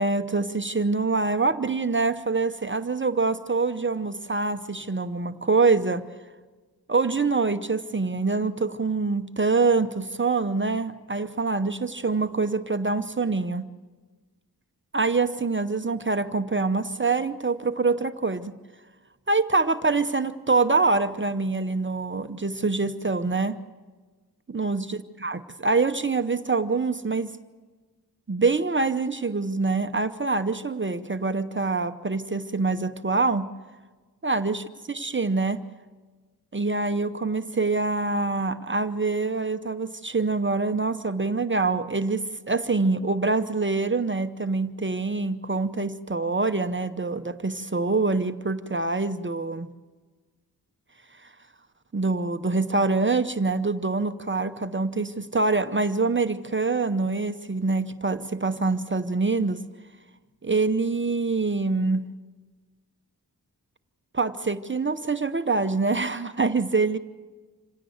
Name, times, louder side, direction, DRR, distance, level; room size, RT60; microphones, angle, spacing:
voice 1, 0.0-6.0 6.9-13.7 14.9-18.6 19.3-23.6 24.5-27.4 28.3-33.5 34.2-35.6 36.5-49.7 51.2-51.3 51.9-59.6 60.4-62.0 64.1-67.0, right 3 dB, 30° right, 10 dB, 0.8 m, -25 dB
26.5 x 17.0 x 7.9 m, 1.4 s
wide cardioid pair, 70°, 38 cm